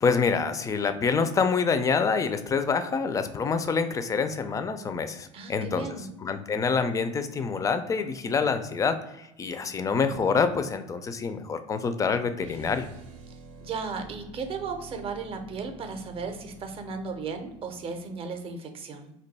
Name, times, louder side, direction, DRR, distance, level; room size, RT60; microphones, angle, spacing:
voice 1, 0.0-12.9, left 5 dB, 20° left, 9 dB, 0.3 m, -26 dB
voice 2, 5.3-6.1 13.6-19.1, right 5 dB, 35° right, 6 dB, 0.6 m, -35 dB
sound 1, 12.4-18.5, right 3 dB, 85° right, 0.6 m, -48 dB
2.6 x 2.2 x 3.9 m, 0.86 s
hypercardioid pair, 90°, 16 cm